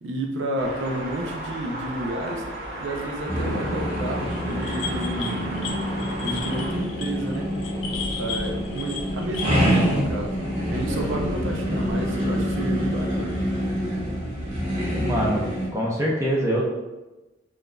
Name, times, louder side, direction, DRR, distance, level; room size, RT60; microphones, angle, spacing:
voice 1, 0.0-2.5 2.8-5.5 6.2-7.5 7.8-10.4 10.7-13.4, right 1 dB, 85° right, 2 dB, 0.5 m, -31 dB
sound 1, 0.6-6.7, right 1 dB, 55° right, 1.1 m, -35 dB
sound 2, 3.3-15.7, equal, 35° right, 1.4 m, -26 dB
sound 3, 4.3-9.8, left 6 dB, 90° left, 0.4 m, -35 dB
voice 2, 15.0-15.4 15.7-16.7, right 1 dB, 15° right, -4 dB, 0.6 m, -23 dB
5.6 x 2.5 x 2.3 m, 1.1 s
head